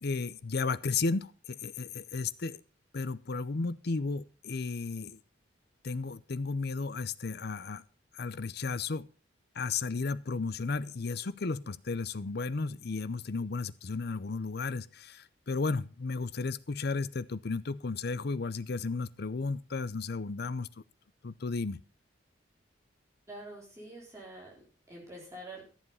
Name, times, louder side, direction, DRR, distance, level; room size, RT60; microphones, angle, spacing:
voice 1, 0.0-2.6 2.9-5.2 5.8-7.8 8.1-9.1 9.6-20.7 21.2-21.8, left 4 dB, 55° left, 17 dB, 0.7 m, -34 dB
voice 2, 23.3-25.6, right 1 dB, 15° right, -3 dB, 3.9 m, -46 dB
14.0 x 7.4 x 5.5 m, 0.36 s
head